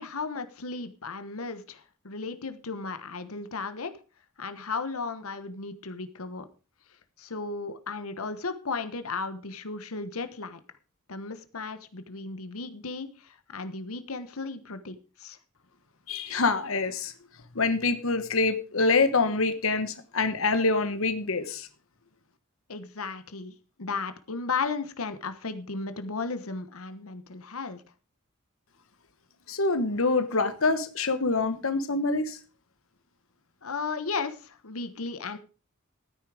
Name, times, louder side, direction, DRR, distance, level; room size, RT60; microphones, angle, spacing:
voice 1, 0.0-3.9 4.4-6.4 7.2-10.6 11.1-15.4 22.7-27.8 33.6-35.4, left 4 dB, 90° left, 10 dB, 1.2 m, -35 dB
voice 2, 16.1-17.1 17.5-21.7 29.5-32.4, left 3 dB, 65° left, 10 dB, 1.2 m, -25 dB
14.0 x 9.6 x 4.9 m, 0.35 s
head